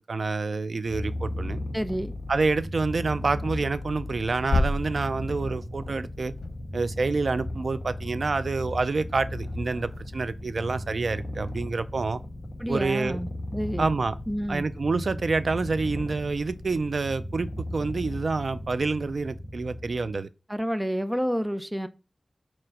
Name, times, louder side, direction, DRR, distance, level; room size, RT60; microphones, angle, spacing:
voice 1, 0.1-1.6 2.3-6.3 6.7-12.2 12.7-13.2 13.8-14.1 14.5-20.3, right 4 dB, 80° right, 0.4 m, -28 dB
Purr, 0.8-20.2, left 1 dB, 30° left, 2.1 m, -36 dB
voice 2, 1.7-2.1 12.6-13.9 14.3-14.7 20.5-21.9, equal, 10° right, 0.6 m, -29 dB
sound 1, 4.5-5.8 6.1-7.4 7.8-10.2 10.6-11.6, left 2 dB, 80° left, 0.9 m, -33 dB
4.8 x 4.3 x 4.9 m
wide cardioid pair, 70°, 0 cm